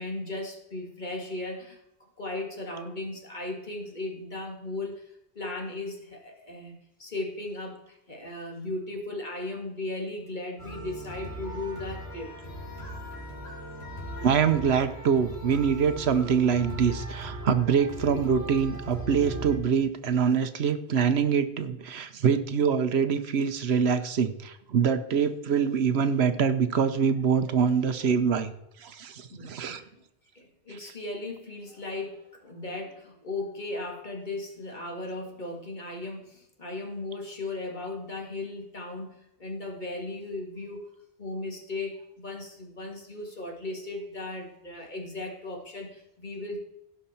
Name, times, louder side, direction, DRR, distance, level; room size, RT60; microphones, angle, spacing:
voice 1, 0.0-5.0 5.4-12.3 22.0-22.1 23.9-24.1 27.5-27.6 28.0-28.1 29.3-29.9 30.3-40.9 41.2-46.6, left 2 dB, 45° left, 1 dB, 2.1 m, -37 dB
sound 1, 10.6-19.6, right 1 dB, 70° left, 2.7 m, -38 dB
voice 2, 14.2-28.5 28.8-29.8, right 7 dB, 70° right, 11 dB, 1.0 m, -24 dB
16.5 x 5.6 x 4.3 m, 0.85 s
omnidirectional pair, 1.2 m